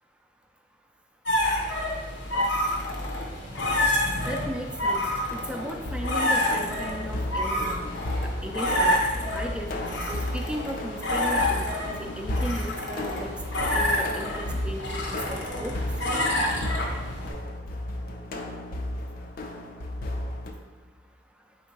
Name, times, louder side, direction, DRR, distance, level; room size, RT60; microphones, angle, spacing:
sound 1, 1.3-17.3, left 1 dB, 80° left, 0.8 m, -28 dB
voice 1, 4.3-5.0 5.3-7.8 8.4-9.0 9.3-9.7 10.1-15.7, equal, 5° right, 3 dB, 0.3 m, -36 dB
sound 2, 5.8-20.5, left 1 dB, 55° left, 0.5 m, -34 dB
4.4 x 3.7 x 2.8 m, 1.4 s
head